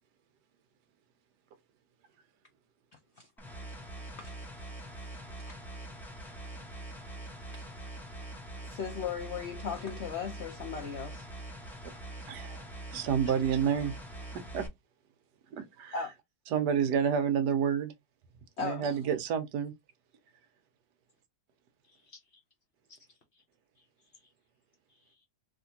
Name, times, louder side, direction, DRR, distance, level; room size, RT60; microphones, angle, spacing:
sound 1, 3.4-14.7, right 1 dB, ahead, 0.5 m, -44 dB
voice 1, 8.6-11.3 15.9-16.1 18.6-18.9, left 6 dB, 75° left, 0.6 m, -37 dB
voice 2, 12.3-13.9 14.3-14.7 15.5-16.0 16.5-17.9 18.6-19.7, right 7 dB, 75° right, 1.2 m, -29 dB
voice 3, 21.8-22.4 22.9-23.4 23.8-24.3 24.9-25.3, left 3 dB, 50° left, 0.9 m, -61 dB
3.5 x 2.5 x 2.7 m
omnidirectional pair, 1.9 m